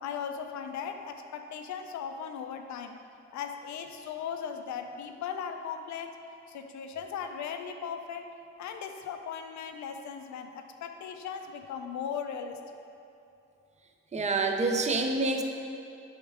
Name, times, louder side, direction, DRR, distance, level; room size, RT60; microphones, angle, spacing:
voice 1, 0.0-3.0 3.3-6.2 6.5-8.3 8.6-12.6, left 7 dB, 70° left, 6 dB, 0.5 m, -38 dB
voice 2, 14.1-15.4, right 3 dB, 25° right, 4 dB, 0.5 m, -27 dB
6.5 x 3.2 x 4.7 m, 2.7 s
cardioid pair, 90°, 30 cm